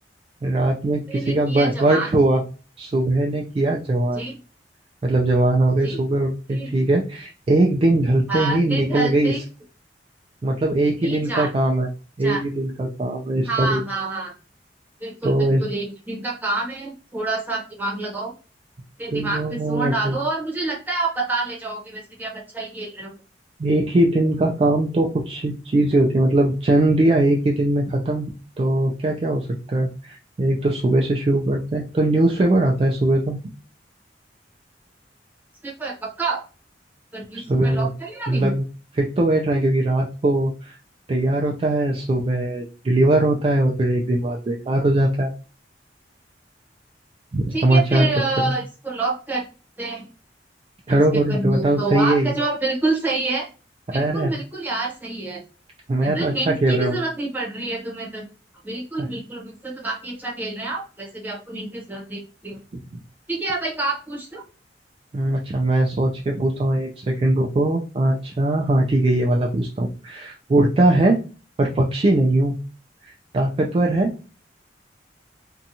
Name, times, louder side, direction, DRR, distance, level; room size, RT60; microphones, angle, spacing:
voice 1, 0.4-2.4 2.8-4.3 5.0-9.3 10.4-11.9 12.2-13.8 15.2-15.6 19.1-20.2 23.6-28.3 28.6-33.4 37.3-37.9 38.3-38.6 38.9-40.8 41.1-45.3 47.3-48.1 48.4-48.5 50.9-52.3 53.9-54.3 55.9-57.0 59.0-59.1 65.1-71.2 71.6-72.6 73.0-74.1, right 1 dB, 30° right, 0 dB, 0.3 m, -20 dB
voice 2, 1.1-2.1 4.1-4.3 5.8-6.0 6.5-6.7 8.3-9.4 11.0-11.5 12.2-12.4 13.5-14.3 15.0-18.3 19.0-23.1 35.6-36.5 37.1-38.5 47.5-49.5 49.8-50.1 50.9-51.0 51.3-53.5 53.9-55.4 56.0-58.2 58.6-62.6 63.3-64.4, right 3 dB, 10° right, -3 dB, 0.8 m, -27 dB
2.7 x 2.2 x 2.6 m, 0.35 s
head